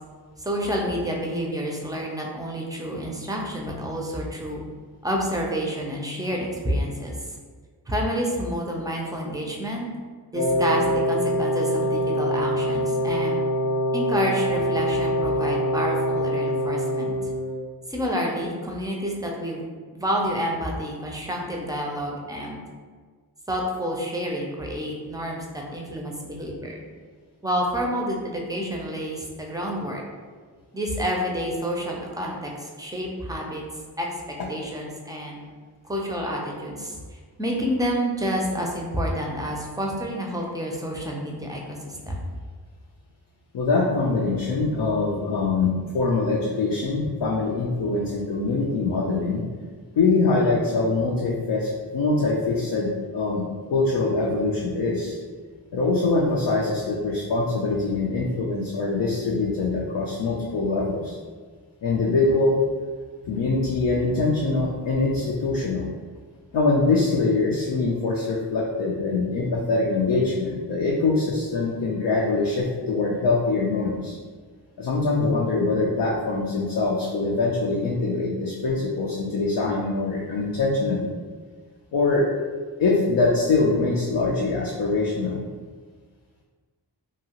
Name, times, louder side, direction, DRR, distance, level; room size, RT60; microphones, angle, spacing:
voice 1, 0.4-4.6 5.0-7.1 7.9-9.9 10.3-13.4 13.9-17.1 17.9-19.6 19.9-22.6 23.5-26.8 27.4-30.0 30.7-33.6 34.0-35.4 35.8-42.2, equal, 10° right, -1 dB, 0.4 m, -29 dB
Wind instrument woodwind instrument, 10.3-17.6, equal, 40° left, 0.6 m, -24 dB
voice 2, 43.5-49.4 50.0-55.2 55.7-61.2 61.8-62.6 63.3-65.9 66.5-74.2 74.8-81.1 81.9-82.3 82.8-85.4, left 3 dB, 80° left, -3 dB, 0.5 m, -23 dB
2.7 x 2.3 x 2.8 m, 1.5 s
wide cardioid pair, 80°, 41 cm